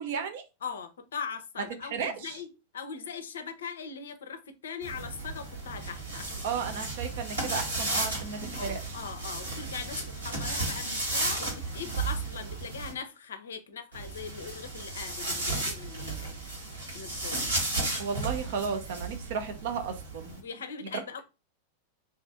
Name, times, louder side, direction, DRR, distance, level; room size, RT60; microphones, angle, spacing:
voice 1, 0.0-0.4 1.9-2.3 6.4-8.8 18.0-20.4, right 6 dB, 55° right, 0.6 m, -34 dB
voice 2, 0.6-2.5 2.7-6.4 6.7-6.8 8.5-16.4 16.9-17.6 20.4-21.2, left 6 dB, 65° left, 0.5 m, -40 dB
sound 1, 4.8-12.9 13.9-20.4, right 2 dB, 75° right, 1.6 m, -34 dB
2.7 x 2.5 x 3.4 m
figure-of-eight pair, 90°, 0 cm